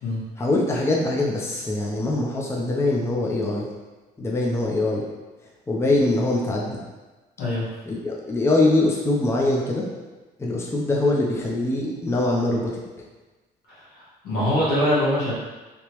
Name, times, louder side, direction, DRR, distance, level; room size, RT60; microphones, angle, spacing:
voice 1, 0.4-3.7 4.2-5.0 5.7-6.8 7.9-9.9 10.4-12.8, left 2 dB, 15° left, -2 dB, 0.5 m, -23 dB
voice 2, 7.4-7.7 13.7-15.3, left 1 dB, 85° left, -7 dB, 1.5 m, -23 dB
3.4 x 2.9 x 3.0 m, 1.2 s
cardioid pair, 110°, 17 cm